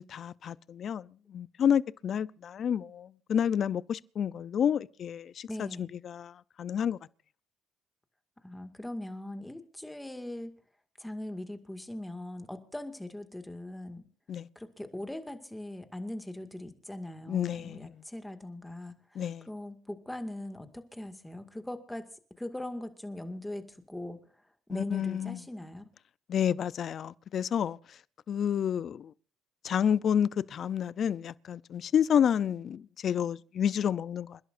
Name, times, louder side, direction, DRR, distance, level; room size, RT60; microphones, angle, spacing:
voice 1, 0.0-7.0 14.3-14.5 17.3-17.9 19.2-19.5 24.7-25.4 26.3-27.8 28.3-29.1 29.6-34.4, left 8 dB, 55° left, 0.6 m, -30 dB
voice 2, 5.5-5.9 8.4-10.5 11.0-14.0 14.6-22.1 22.4-24.2 24.7-25.9, left 1 dB, 5° left, 2.2 m, -40 dB
28.5 x 11.0 x 2.6 m
supercardioid pair, 70°, 0 cm